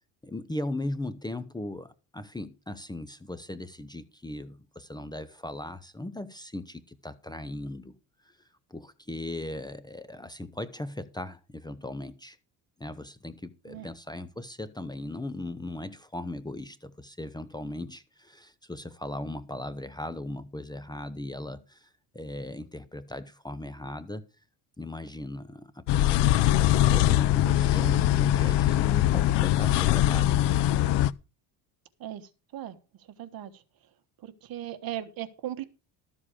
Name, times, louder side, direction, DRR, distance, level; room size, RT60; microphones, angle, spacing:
voice 1, 0.2-7.9 8.2-12.4 12.8-24.3 24.8-30.4, left 1 dB, 10° left, 0.8 m, -38 dB
sound 1, 25.9-31.1, left 13 dB, 70° left, 0.6 m, -22 dB
voice 2, 32.0-32.8 33.2-33.6 34.2-35.6, right 12 dB, 55° right, 1.4 m, -38 dB
13.0 x 7.5 x 4.9 m
cardioid pair, 115°, 43 cm